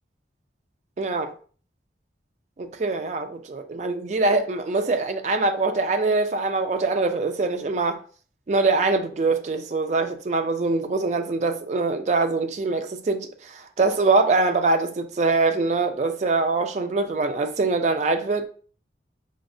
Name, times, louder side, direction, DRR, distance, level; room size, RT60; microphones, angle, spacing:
voice 1, 1.0-1.3 2.6-8.0 8.5-18.5, right 3 dB, 40° right, 0.3 m, -23 dB
5.0 x 2.0 x 2.5 m
head